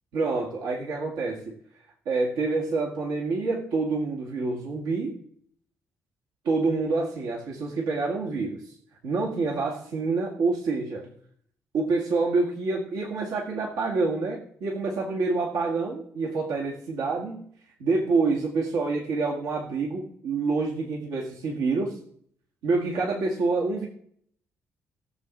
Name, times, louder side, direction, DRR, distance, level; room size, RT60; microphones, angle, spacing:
voice 1, 0.1-1.5 2.1-5.2 6.5-8.7 9.0-11.1 11.7-17.5 17.8-22.0 22.6-23.9, right 3 dB, 65° right, -3 dB, 2.0 m, -27 dB
18.0 x 7.0 x 3.8 m, 0.63 s
figure-of-eight pair, 40°, 7 cm